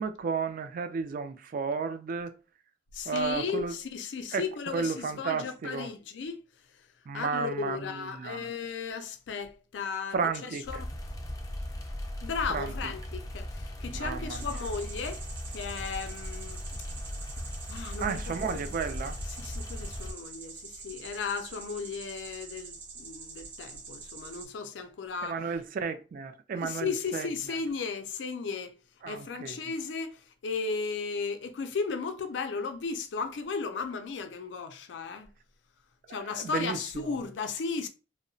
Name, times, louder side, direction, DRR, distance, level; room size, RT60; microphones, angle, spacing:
voice 1, 0.0-2.3 3.1-3.7 4.3-4.4 4.7-5.9 7.1-8.5 10.1-10.8 12.5-12.9 13.9-14.7 18.0-19.2 25.2-27.6 29.0-29.6 36.1-37.2, right 5 dB, 50° right, 0.3 m, -33 dB
voice 2, 2.9-6.4 7.1-10.9 12.2-15.3 15.5-16.6 17.2-18.4 19.3-25.4 26.6-28.8 29.1-35.3 36.1-37.9, left 5 dB, 90° left, 0.4 m, -35 dB
sound 1, 10.6-20.1, left 1 dB, 20° left, 0.4 m, -38 dB
sound 2, 14.3-24.4, right 4 dB, 80° right, 0.7 m, -46 dB
2.7 x 2.0 x 2.6 m
head